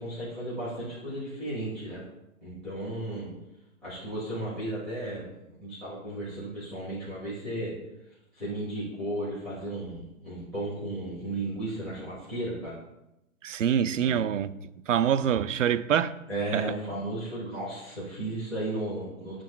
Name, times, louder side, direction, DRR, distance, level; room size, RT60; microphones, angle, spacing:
voice 1, 0.0-2.0 2.4-3.3 3.8-5.3 5.6-7.7 8.3-12.7 14.0-14.2 16.3-19.4, right 1 dB, ahead, 1.4 m, -34 dB
voice 2, 13.4-14.5 14.9-16.2 16.5-16.6, right 9 dB, 60° right, 0.5 m, -25 dB
11.0 x 6.1 x 2.3 m
hypercardioid pair, 170°, 42 cm